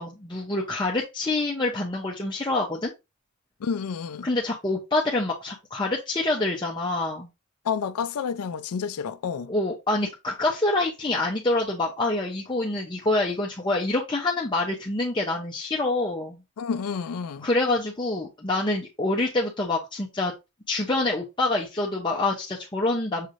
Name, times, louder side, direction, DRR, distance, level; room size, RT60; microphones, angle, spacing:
voice 1, 0.0-2.9 4.2-7.3 9.5-16.4 17.4-20.3 20.7-23.3, left 2 dB, 20° left, 0.6 m, -26 dB
voice 2, 3.6-4.3 7.6-9.5 16.6-17.5, left 6 dB, 90° left, 0.4 m, -30 dB
6.5 x 3.0 x 2.5 m
head